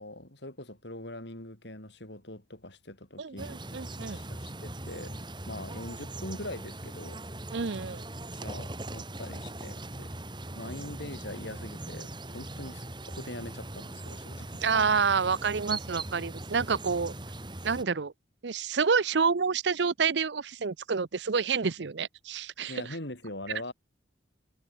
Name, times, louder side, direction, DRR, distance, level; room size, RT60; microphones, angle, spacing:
voice 1, 0.0-3.6 4.0-5.2 5.4-7.2 7.5-7.6 8.3-10.1 10.5-14.6 16.2-16.3 22.7-23.7, left 1 dB, 75° left, 6.9 m, -42 dB
voice 2, 3.2-4.2 7.5-8.0 14.6-17.1 17.6-18.1 18.4-23.0 23.5-23.6, right 5 dB, 75° right, 0.7 m, -28 dB
sound 1, 3.4-17.8, right 2 dB, 25° right, 4.2 m, -40 dB
head